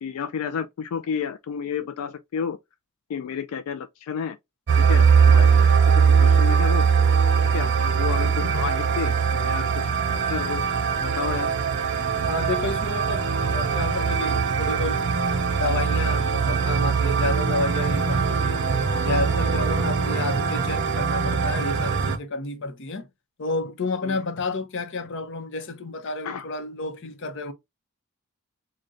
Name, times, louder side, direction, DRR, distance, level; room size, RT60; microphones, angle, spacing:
voice 1, 0.0-2.6 3.1-4.4 4.8-6.9 7.5-10.6 11.0-11.5 19.7-19.9 24.0-24.2 26.2-26.5, left 7 dB, 85° left, 0.3 m, -31 dB
sound 1, 4.7-22.2, right 6 dB, 55° right, 0.5 m, -21 dB
voice 2, 12.3-15.1 15.6-18.6 19.0-23.1 23.4-27.5, left 3 dB, 55° left, 0.7 m, -30 dB
3.7 x 2.1 x 3.9 m
head